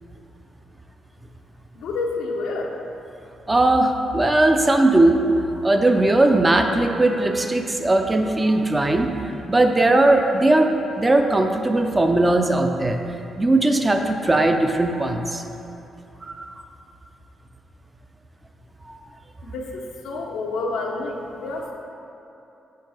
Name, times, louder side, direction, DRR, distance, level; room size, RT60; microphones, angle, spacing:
voice 1, 1.7-2.8 19.4-21.7, left 3 dB, 85° left, 0 dB, 0.7 m, -29 dB
voice 2, 3.5-5.2 5.6-10.7 11.0-13.0 13.4-15.4 16.2-16.5 18.9-19.0, right 2 dB, 20° right, 4 dB, 0.5 m, -19 dB
5.2 x 4.6 x 4.7 m, 2.9 s
cardioid pair, 75°, 0 cm